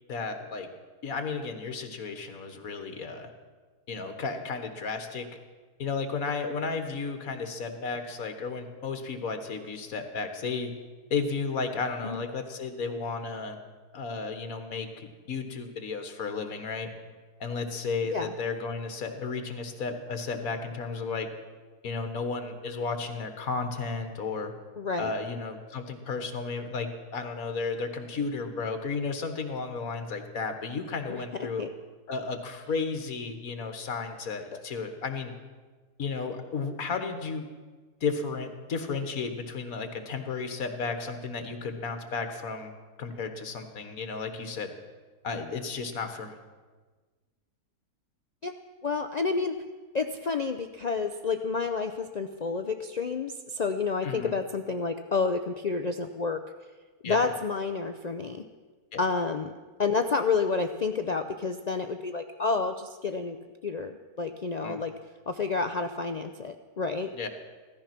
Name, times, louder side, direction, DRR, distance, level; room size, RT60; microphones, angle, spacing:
voice 1, 0.1-0.7 1.0-3.3 3.9-5.3 5.8-10.7 11.1-13.6 13.9-16.9 17.4-21.3 21.8-24.5 25.0-31.6 32.1-35.3 36.0-37.5 38.0-42.7 43.0-44.7 45.2-46.4 54.0-54.3 57.0-57.2 58.9-59.0 64.6-64.8 67.1-67.3, left 4 dB, 70° left, 7 dB, 1.8 m, -33 dB
voice 2, 24.8-25.1 31.1-31.7 34.5-34.6 48.4-48.5 48.8-49.6 49.9-56.4 57.0-58.4 59.0-59.5 59.8-63.4 63.6-64.9 65.3-67.1, left 4 dB, 85° left, 7 dB, 0.3 m, -29 dB
16.5 x 13.5 x 6.0 m, 1.4 s
omnidirectional pair, 1.6 m